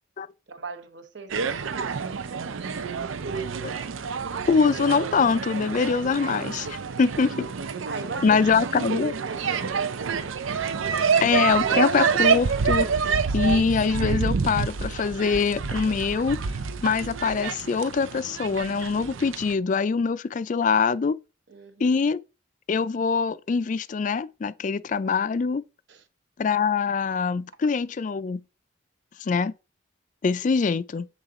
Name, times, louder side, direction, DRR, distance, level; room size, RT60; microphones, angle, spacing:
voice 1, 0.5-2.8 6.9-7.3 7.9-8.6 8.8-10.3 21.5-22.0 25.9-26.0, right 4 dB, 60° right, 0.9 m, -41 dB
sound 1, 1.3-19.5, right 5 dB, 80° right, 0.5 m, -28 dB
voice 2, 4.5-7.3 8.2-9.1 11.2-12.9 13.3-16.4 16.8-21.2 21.8-22.2 22.7-25.6 26.4-28.4 29.2-29.5 30.2-31.1, left 5 dB, 40° left, 0.3 m, -23 dB
7.2 x 3.8 x 3.7 m
head